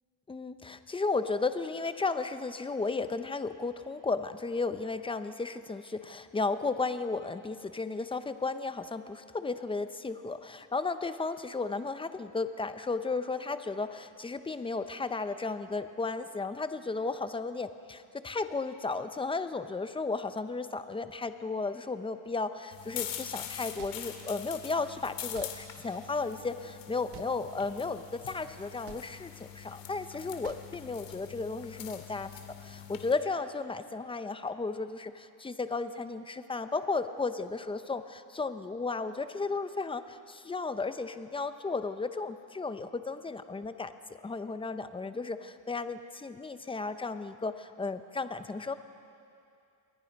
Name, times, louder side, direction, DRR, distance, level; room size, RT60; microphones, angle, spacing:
voice 1, 0.3-32.3 32.6-43.9 44.2-48.7, left 3 dB, 10° left, 10 dB, 0.7 m, -34 dB
sound 1, 22.7-33.1, left 10 dB, 70° left, 2.5 m, -44 dB
sound 2, 23.8-24.0 25.3-25.5 27.1-27.3 28.8-29.0 30.4-30.6, right 11 dB, 55° right, 1.3 m, -48 dB
28.5 x 21.0 x 5.3 m, 2.5 s
cardioid pair, 140°, 46 cm